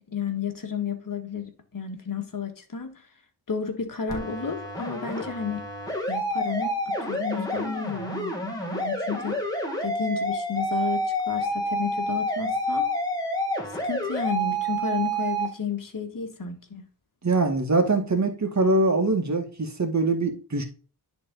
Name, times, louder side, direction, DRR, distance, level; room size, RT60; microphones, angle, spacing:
voice 1, 0.1-3.0 3.5-5.7 6.1-9.4 9.8-12.9 13.8-16.8, left 6 dB, 55° left, 1.8 m, -32 dB
sound 1, 4.1-15.5, equal, 10° left, 2.5 m, -28 dB
voice 2, 17.2-20.6, right 2 dB, 45° right, 1.9 m, -23 dB
10.5 x 4.0 x 3.9 m
wide cardioid pair, 75°, 40 cm